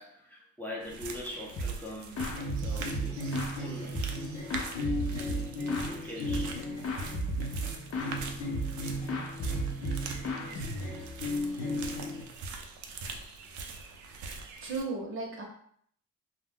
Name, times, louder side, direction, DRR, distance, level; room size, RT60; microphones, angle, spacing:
voice 1, 0.0-4.0 4.7-5.0 5.8-6.6, left 1 dB, 5° left, -4 dB, 0.7 m, -43 dB
sound 1, 0.8-14.8, right 3 dB, 75° right, 0.5 m, -43 dB
sound 2, 1.6-1.9 2.2-3.6 3.9-5.9 6.3-6.6 6.8-8.2 8.5-8.8 9.1-11.2, right 1 dB, 50° left, 0.7 m, -34 dB
sound 3, 2.3-12.2, left 1 dB, 75° left, 0.9 m, -37 dB
voice 2, 14.6-15.4, right 3 dB, 45° right, 0 dB, 0.8 m, -35 dB
2.2 x 2.2 x 3.5 m, 0.62 s
cardioid pair, 90°, 30 cm